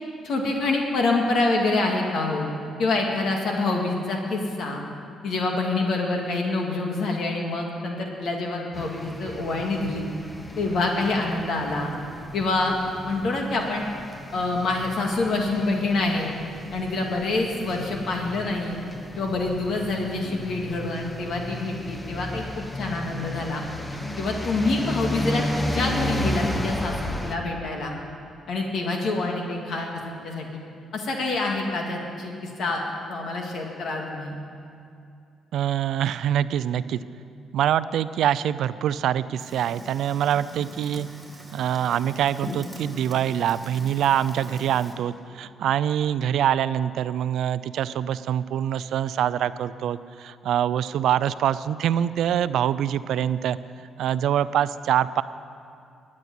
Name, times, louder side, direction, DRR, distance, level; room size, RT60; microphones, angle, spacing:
voice 1, 0.2-2.5 2.8-4.8 5.2-10.0 10.6-11.9 12.3-12.7 13.0-13.9 14.3-16.3 16.7-18.8 19.2-23.6 23.9-27.9 28.5-30.5 30.9-32.8 33.1-34.4, left 2 dB, 65° left, 1 dB, 2.0 m, -26 dB
sound 1, 8.7-27.4, left 1 dB, 15° left, 1.0 m, -33 dB
voice 2, 35.5-37.0 37.5-41.1 41.5-53.6 54.0-55.2, right 10 dB, 75° right, 15 dB, 0.4 m, -24 dB
Fire, 39.4-44.9, left 1 dB, ahead, 3.3 m, -41 dB
13.5 x 8.6 x 10.0 m, 2.5 s
cardioid pair, 90°, 0 cm